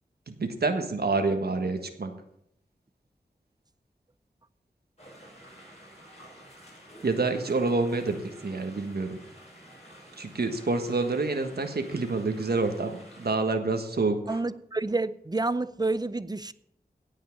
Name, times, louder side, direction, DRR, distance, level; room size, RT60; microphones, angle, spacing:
voice 1, 0.3-2.1 7.0-9.2 10.2-14.4, right 3 dB, 85° right, 1.5 m, -28 dB
sound 1, 5.0-13.3, equal, 45° left, 6.3 m, -50 dB
voice 2, 14.3-16.5, right 2 dB, 25° right, 0.6 m, -29 dB
17.0 x 5.7 x 7.1 m
wide cardioid pair, 80°, 16 cm